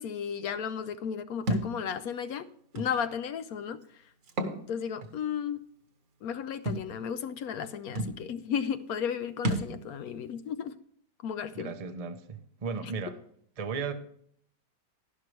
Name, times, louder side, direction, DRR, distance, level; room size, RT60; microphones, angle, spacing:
voice 1, 0.0-2.5 2.7-3.8 4.5-5.6 6.2-10.8 11.2-11.7 12.8-12.9, left 7 dB, 70° left, 1.0 m, -34 dB
Thump thud, 1.5-1.7 2.8-2.9 4.2-4.6 5.0-5.1 6.7-6.9 7.6-7.7 8.0-8.2 9.4-9.7, right 1 dB, 55° right, 1.5 m, -30 dB
voice 2, 11.5-13.2 13.6-13.9, right 5 dB, 35° right, 0.6 m, -35 dB
11.5 x 11.5 x 3.2 m
omnidirectional pair, 1.8 m